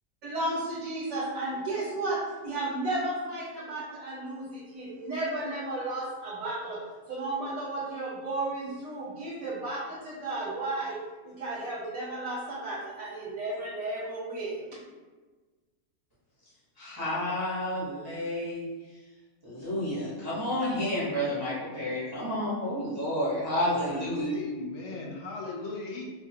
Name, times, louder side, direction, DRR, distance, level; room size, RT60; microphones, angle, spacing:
voice 1, 0.2-14.8, right 2 dB, 60° right, -7 dB, 1.3 m, -33 dB
voice 2, 16.8-18.6 19.4-24.3, left 1 dB, 20° right, -10 dB, 0.8 m, -30 dB
voice 3, 24.1-26.1, left 3 dB, 60° left, -1 dB, 0.8 m, -38 dB
4.5 x 2.4 x 2.7 m, 1.3 s
omnidirectional pair, 1.6 m